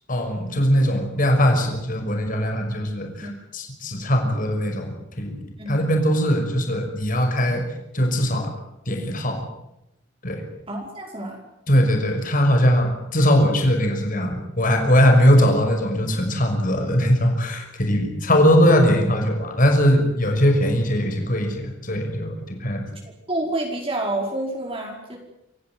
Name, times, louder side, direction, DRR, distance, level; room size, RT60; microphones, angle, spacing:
voice 1, 0.1-5.3 5.7-7.6 7.9-8.5 8.9-9.4 10.2-10.4 11.7-22.8, equal, 50° left, 4 dB, 6.1 m, -20 dB
voice 2, 5.6-5.9 10.7-11.4 23.3-25.2, right 1 dB, 30° right, 0 dB, 5.0 m, -28 dB
27.5 x 15.5 x 9.5 m, 0.85 s
head